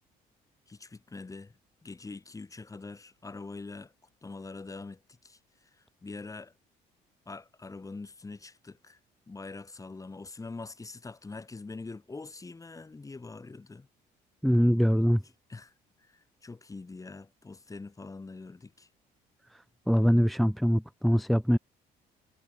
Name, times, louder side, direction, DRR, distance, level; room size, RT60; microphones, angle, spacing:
voice 1, 0.7-1.5 1.8-3.9 4.2-5.4 6.0-6.5 7.3-9.0 9.3-13.9 15.5-15.7 16.0-18.9, left 3 dB, 20° left, 5.9 m, -44 dB
voice 2, 14.4-15.2 19.9-21.6, equal, ahead, 0.7 m, -23 dB
cardioid pair, 110°, 17 cm